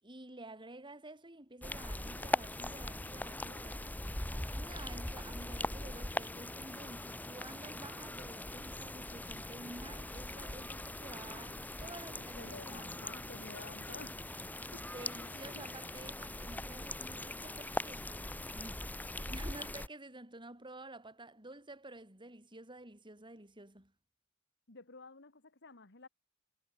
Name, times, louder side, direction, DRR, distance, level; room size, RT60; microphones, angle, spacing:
voice 1, 0.0-4.0 4.5-13.4 14.9-18.8 19.3-23.9, right 2 dB, 25° right, 5.6 m, -51 dB
sound 1, 1.6-19.9, left 1 dB, 10° left, 1.2 m, -41 dB
voice 2, 12.1-14.2 14.7-14.9 15.2-15.7 24.7-26.1, left 3 dB, 60° left, 2.1 m, -51 dB
head